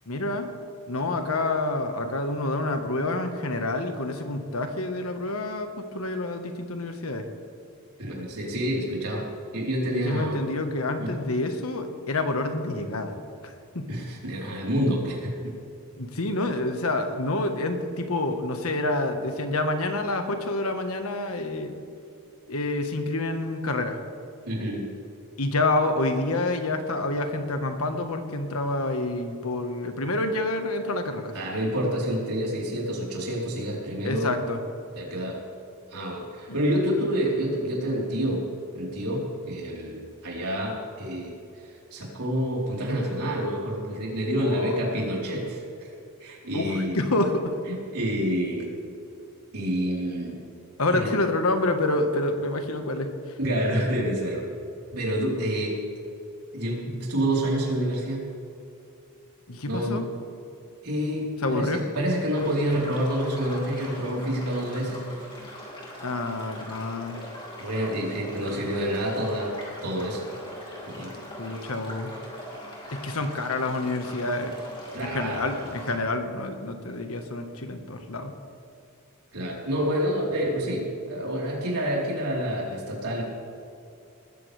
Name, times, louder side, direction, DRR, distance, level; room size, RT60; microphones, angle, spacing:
voice 1, 0.1-0.5 0.9-7.3 9.9-13.1 13.4-13.9 16.0-21.7 22.5-24.0 25.4-31.3 34.0-34.6 44.4-44.7 46.5-47.5 50.8-53.4 59.5-60.1 61.4-61.8 66.0-67.2 71.2-72.1 72.9-74.5 75.0-78.4, left 2 dB, 70° left, 6 dB, 1.5 m, -28 dB
voice 2, 8.0-9.3 9.5-10.4 11.0-11.1 13.9-15.5 24.4-24.9 31.3-34.3 34.9-35.4 35.9-38.4 38.7-41.4 41.9-45.9 46.2-47.0 47.7-48.7 49.5-50.4 50.9-51.1 53.4-54.4 54.9-55.8 56.5-58.3 59.7-60.0 60.8-65.1 67.6-70.3 70.9-71.1 74.9-75.5 79.3-83.2, equal, 90° right, -3 dB, 4.1 m, -28 dB
sound 1, 62.3-75.9, left 1 dB, 20° left, 3.3 m, -41 dB
20.0 x 14.0 x 3.5 m, 2.6 s
head